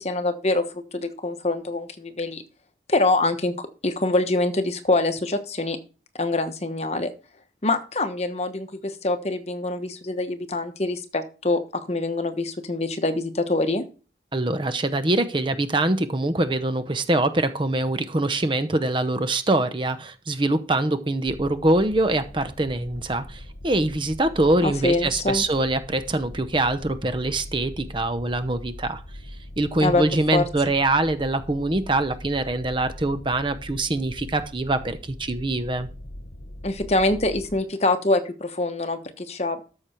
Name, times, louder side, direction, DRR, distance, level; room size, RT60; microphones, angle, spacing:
voice 1, 0.0-2.4 2.9-5.8 6.1-7.1 7.6-13.8 24.6-25.4 29.8-30.0 30.3-30.4 36.6-39.6, left 2 dB, 35° left, 9 dB, 1.1 m, -25 dB
voice 2, 14.3-29.0 29.6-35.9, right 2 dB, 25° right, 11 dB, 0.7 m, -24 dB
sound 1, 21.3-37.6, left 1 dB, 65° left, 1.3 m, -41 dB
13.0 x 6.6 x 4.4 m, 0.36 s
head